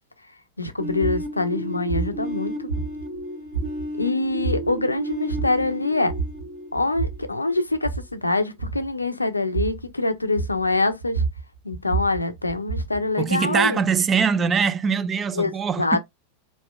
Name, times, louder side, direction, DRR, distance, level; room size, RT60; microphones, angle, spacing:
voice 1, 0.6-2.7 4.0-6.1 6.7-11.2 11.6-13.8 15.4-15.5 15.8-16.0, left 2 dB, 85° left, 0.5 m, -24 dB
sound 1, 0.8-7.6, right 1 dB, 45° right, 1.3 m, -33 dB
sound 2, 0.9-1.3 1.9-2.2 2.7-3.2 3.5-4.0 4.4-4.7 5.1-5.6 6.1-6.5 6.7-7.3 7.7-8.1 8.6-8.9 9.5-9.9 10.3-10.7 11.0-13.1, right 4 dB, 90° right, 2.7 m, -28 dB
voice 2, 13.2-16.0, right 6 dB, 20° right, 0.4 m, -22 dB
4.1 x 3.2 x 2.2 m
figure-of-eight pair, 90°, 0 cm